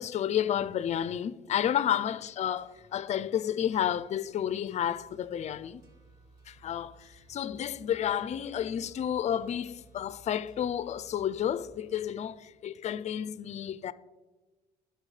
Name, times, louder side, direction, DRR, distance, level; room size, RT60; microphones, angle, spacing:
voice 1, 0.0-5.8 6.5-13.9, left 10 dB, 40° left, 0.4 m, -31 dB
sound 1, 2.6-12.0, right 2 dB, 25° right, 2.6 m, -59 dB
17.5 x 5.9 x 3.3 m
cardioid pair, 110°, 17 cm